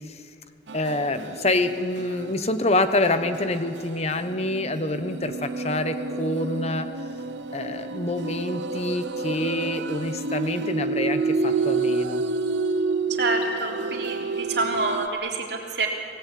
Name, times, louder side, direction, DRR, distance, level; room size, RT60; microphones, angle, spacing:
voice 1, 0.7-6.9 7.5-12.2, left 2 dB, 35° left, 9 dB, 1.1 m, -26 dB
sound 1, 0.7-2.5 3.0-15.1, right 3 dB, 85° right, 0.9 m, -29 dB
voice 2, 13.2-15.9, right 3 dB, 65° right, -1 dB, 3.9 m, -27 dB
26.0 x 17.5 x 8.6 m, 2.6 s
head